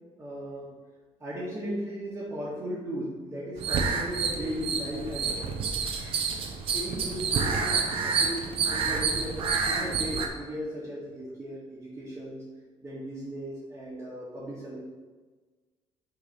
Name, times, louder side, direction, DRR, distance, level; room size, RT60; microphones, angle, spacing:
voice 1, 0.2-0.7 1.2-5.6 6.7-12.4 12.8-14.8, equal, 20° right, -8 dB, 1.8 m, -36 dB
sound 1, 3.6-10.3, right 5 dB, 55° right, 1.0 m, -28 dB
6.5 x 4.7 x 5.8 m, 1.4 s
cardioid pair, 140°, 11 cm